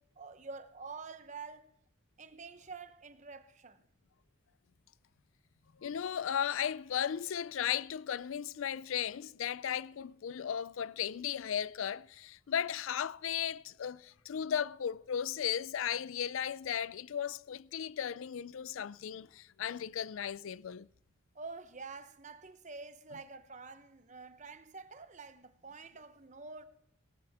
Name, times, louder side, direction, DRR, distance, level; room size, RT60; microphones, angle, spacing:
voice 1, 0.0-1.7 2.2-3.8 21.3-26.6, right 4 dB, 35° right, 0.8 m, -48 dB
voice 2, 5.8-20.9, left 9 dB, 70° left, 0.4 m, -36 dB
18.0 x 12.5 x 3.5 m
head